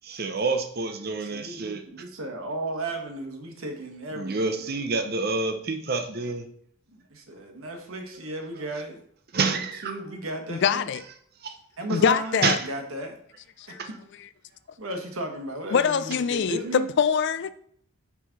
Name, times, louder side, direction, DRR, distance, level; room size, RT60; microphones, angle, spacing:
voice 1, 0.0-1.8 4.1-6.4 9.3-9.9 11.4-11.5 12.4-12.6 13.8-13.9, right 4 dB, 45° right, 6 dB, 0.7 m, -27 dB
voice 2, 1.2-4.6 6.9-9.0 9.5-10.9 11.8-13.2 13.9-14.0 14.8-16.9, right 2 dB, 75° right, 4 dB, 1.1 m, -35 dB
voice 3, 10.5-11.0 11.9-12.6 13.6-13.8 15.7-17.5, left 7 dB, 55° left, 14 dB, 0.3 m, -24 dB
4.7 x 4.1 x 5.6 m, 0.63 s
head